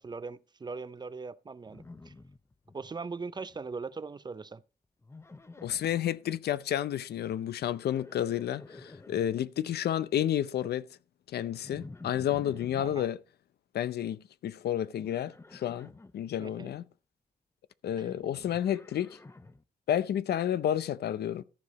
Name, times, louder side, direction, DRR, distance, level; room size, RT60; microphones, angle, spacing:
voice 1, 0.0-2.1 2.7-4.6 12.8-13.1 16.4-16.7 18.0-18.1, right 4 dB, 25° right, 0.5 m, -40 dB
Livestock farm animals working animals, 1.7-2.9 3.2-3.7 5.0-6.0 7.6-9.3 11.6-13.0 15.0-16.1 17.9-19.6, left 3 dB, 15° left, 0.7 m, -50 dB
voice 2, 5.6-10.9 11.3-13.2 13.7-16.9 17.8-19.2 19.9-21.4, left 10 dB, 85° left, 0.6 m, -31 dB
13.5 x 4.9 x 5.1 m
wide cardioid pair, 115°, 16 cm